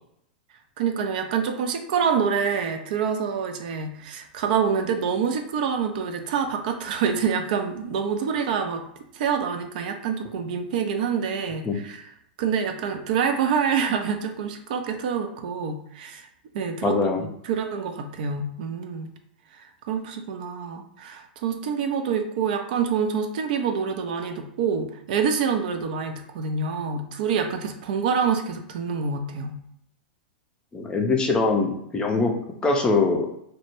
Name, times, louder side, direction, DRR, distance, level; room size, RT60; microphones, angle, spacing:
voice 1, 0.8-8.8 9.1-12.1 12.4-16.3 16.5-19.1 19.5-29.6, right 6 dB, 55° right, 6 dB, 0.3 m, -26 dB
voice 2, 16.8-17.2 30.7-32.3 32.6-33.3, left 3 dB, 15° left, 2 dB, 0.4 m, -22 dB
2.1 x 2.1 x 3.0 m, 0.73 s
figure-of-eight pair, 100°, 5 cm